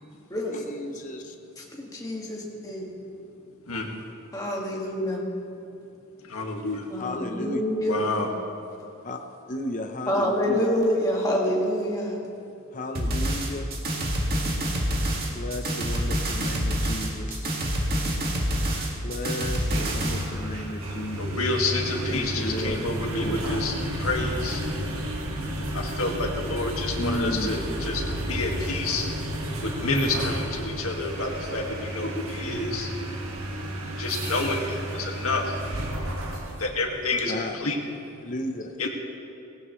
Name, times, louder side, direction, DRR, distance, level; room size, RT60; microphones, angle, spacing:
voice 1, 0.5-1.3 7.0-7.6 9.0-9.2 9.5-10.7 12.7-13.7 15.3-17.5 19.0-21.5 22.1-22.8 23.2-23.5 27.0-27.6 37.3-37.6 38.2-38.7, left 1 dB, 35° left, 4 dB, 0.7 m, -34 dB
voice 2, 1.7-2.9 4.3-5.2 6.9-8.0 10.1-12.2, equal, 15° left, -2 dB, 1.9 m, -26 dB
voice 3, 3.7-4.0 6.2-6.9 7.9-8.3 18.7-18.9 21.1-24.6 25.3-29.1 29.6-33.0 33.5-33.7 34.0-35.7 36.6-37.8 38.8-38.9, left 2 dB, 75° left, 1 dB, 1.8 m, -29 dB
sound 1, 13.0-20.3, right 1 dB, 45° right, 1.9 m, -27 dB
sound 2, 19.5-36.7, right 1 dB, 75° right, 1.6 m, -32 dB
18.5 x 17.0 x 3.2 m, 2.7 s
head